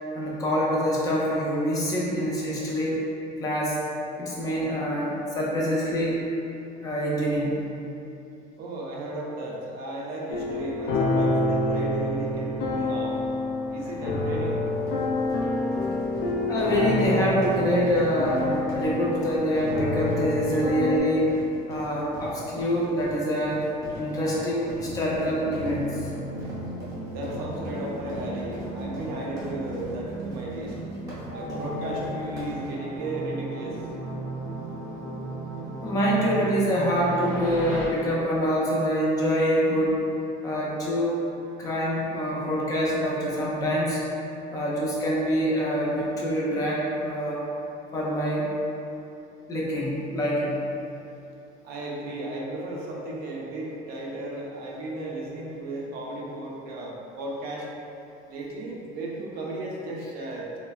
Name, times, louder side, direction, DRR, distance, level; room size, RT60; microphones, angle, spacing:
voice 1, 0.1-3.0 3.4-3.8 4.2-6.2 6.8-7.6 16.5-21.3 21.7-23.6 24.0-26.1 35.8-40.0 40.4-41.2 41.6-44.0 44.5-47.4 47.9-48.5 49.5-50.6, equal, 20° left, -5 dB, 0.4 m, -25 dB
voice 2, 8.6-13.2 13.7-14.6 27.1-30.7 31.3-33.9 51.6-57.7 58.3-60.6, right 2 dB, 60° right, -3 dB, 0.4 m, -35 dB
sound 1, 10.3-21.0, left 2 dB, 90° left, 0.4 m, -27 dB
sound 2, 14.6-32.7, right 1 dB, 20° right, 0.6 m, -40 dB
sound 3, 24.8-37.9, right 1 dB, 60° left, 0.8 m, -35 dB
3.2 x 2.0 x 2.3 m, 2.8 s
cardioid pair, 175°, 18 cm